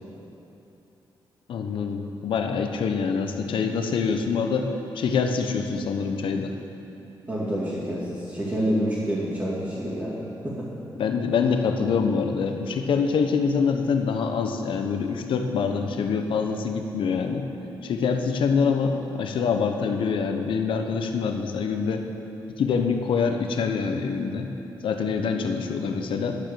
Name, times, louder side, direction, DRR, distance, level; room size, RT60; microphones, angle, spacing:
voice 1, 1.5-4.7 4.9-6.5 11.0-17.5 17.8-22.0 22.6-24.5 24.8-26.4, left 5 dB, 75° left, 5 dB, 0.9 m, -25 dB
voice 2, 7.3-10.8, equal, 25° right, -11 dB, 2.5 m, -28 dB
11.5 x 7.7 x 6.8 m, 2.9 s
cardioid pair, 120°, 9 cm